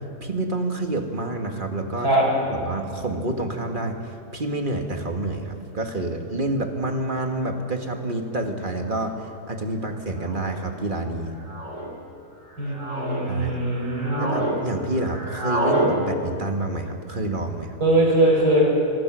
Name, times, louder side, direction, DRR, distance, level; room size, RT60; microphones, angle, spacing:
voice 1, 0.2-2.1 2.5-4.0 4.3-11.4 13.3-13.6 14.2-17.8, right 2 dB, 35° right, 4 dB, 1.8 m, -28 dB
sound 1, 7.8-7.9 8.9-9.2 10.2-10.6 11.4-11.9 12.5-13.2 13.7-14.6 14.8-15.9, right 1 dB, 50° right, 5.1 m, -28 dB
voice 2, 12.6-14.3 17.8-18.7, right 1 dB, 90° right, -5 dB, 6.6 m, -21 dB
26.0 x 18.5 x 6.2 m, 2.5 s
omnidirectional pair, 1.6 m